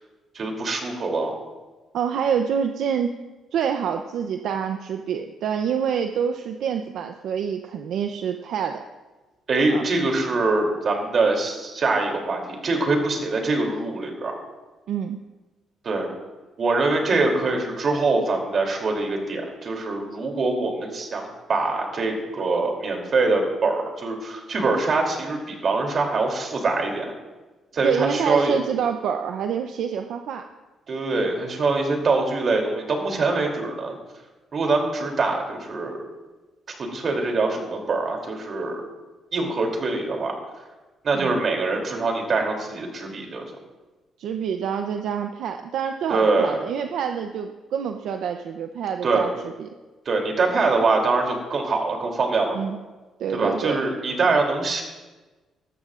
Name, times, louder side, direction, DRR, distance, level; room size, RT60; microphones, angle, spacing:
voice 1, 0.3-1.3 9.5-14.4 15.8-16.1 16.6-27.1 27.7-28.6 30.9-33.9 34.5-36.0 36.7-38.8 39.3-40.3 41.0-43.4 46.1-46.6 49.0-49.2 50.0-52.6 53.3-54.8, right 3 dB, 50° right, 1 dB, 3.0 m, -24 dB
voice 2, 1.9-3.1 3.5-8.8 9.7-9.8 14.9-15.2 27.8-30.4 41.1-41.4 44.2-49.7 52.5-52.8 53.2-53.8, right 7 dB, 75° right, 6 dB, 0.6 m, -27 dB
19.0 x 13.5 x 2.5 m, 1.2 s
cardioid pair, 90°, 0 cm